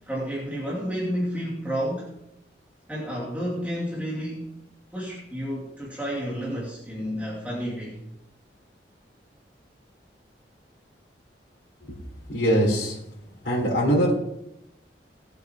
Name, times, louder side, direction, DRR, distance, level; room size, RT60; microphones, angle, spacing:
voice 1, 0.1-2.1 2.9-4.6 4.9-8.0, equal, 10° right, -6 dB, 2.7 m, -31 dB
voice 2, 12.3-13.0 13.4-14.1, equal, 75° left, -5 dB, 3.5 m, -22 dB
19.0 x 8.0 x 3.7 m, 0.79 s
head